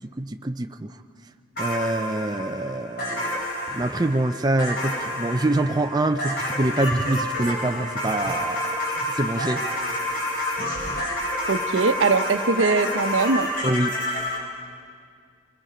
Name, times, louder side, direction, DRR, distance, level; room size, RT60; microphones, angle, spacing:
voice 1, 0.2-0.9 1.6-3.4 3.7-8.6 9.0-9.6 10.6-11.0 13.6-13.9, right 2 dB, 20° right, 6 dB, 0.5 m, -25 dB
sound 1, 1.6-14.4, left 1 dB, 50° left, 5.4 m, -29 dB
voice 2, 11.5-13.5, right 4 dB, 85° right, 9 dB, 0.9 m, -21 dB
27.0 x 21.0 x 5.1 m, 2.2 s
head